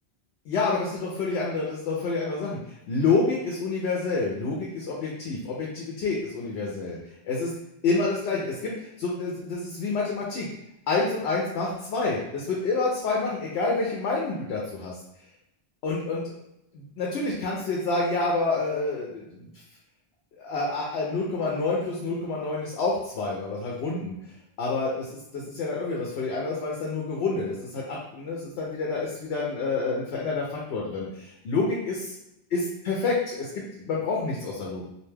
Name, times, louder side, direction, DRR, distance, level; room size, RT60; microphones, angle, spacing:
voice 1, 0.5-2.6 2.9-7.0 7.2-7.5 7.8-10.5 10.9-14.9 15.8-16.2 16.7-19.5 20.4-24.2 24.6-32.1 32.5-34.9, left 3 dB, 85° left, -3 dB, 0.9 m, -28 dB
2.5 x 2.2 x 3.2 m, 0.85 s
omnidirectional pair, 1.1 m